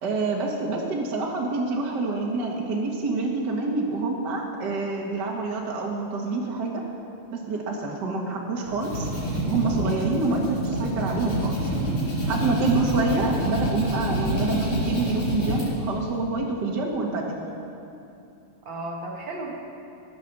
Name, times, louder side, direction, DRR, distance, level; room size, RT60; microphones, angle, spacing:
voice 1, 0.0-6.8 7.3-9.1 9.5-11.7 12.3-17.4, right 3 dB, 45° right, -2 dB, 1.4 m, -27 dB
voice 2, 7.8-8.2 10.2-10.5 18.6-19.5, right 2 dB, 90° right, -2 dB, 1.0 m, -36 dB
sound 1, 8.6-15.7, equal, 55° left, 6.3 m, -27 dB
16.5 x 10.5 x 6.7 m, 2.7 s
omnidirectional pair, 4.2 m